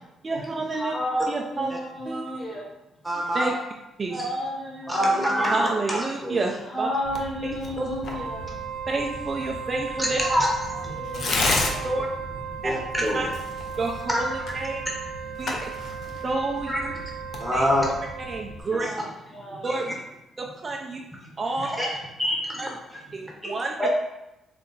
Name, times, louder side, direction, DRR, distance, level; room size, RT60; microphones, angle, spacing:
voice 1, 0.2-0.9 1.3-1.7 2.1-2.4 3.3-3.5 4.0-4.3 5.5-6.9 7.7-7.9 8.9-10.2 11.8-12.1 12.6-12.7 13.1-13.3 13.8-14.8 15.4-15.6 16.2-16.9 17.5-17.6 18.3-18.9 19.6-19.9 20.4-21.0 21.4-21.7 22.6-22.7 23.1-23.9, right 3 dB, 30° right, 0 dB, 0.4 m, -29 dB
voice 2, 0.8-2.7 4.1-5.5 6.7-8.4 10.9-11.9 13.2-13.3 18.6-19.7, equal, 30° left, -4 dB, 1.5 m, -32 dB
voice 3, 3.0-3.5 4.9-6.4 10.0-10.9 12.6-13.3 16.7-16.8 17.4-17.8 18.7-18.9 21.6-22.6 22.9-23.0 23.4-23.5 23.8-23.9, equal, ahead, -3 dB, 1.0 m, -25 dB
Tearing, 7.0-18.6, left 2 dB, 50° left, 0.6 m, -34 dB
Wind instrument woodwind instrument, 8.0-18.6, right 8 dB, 85° right, 0.5 m, -37 dB
3.8 x 3.3 x 3.9 m, 0.91 s
cardioid pair, 130°, 0 cm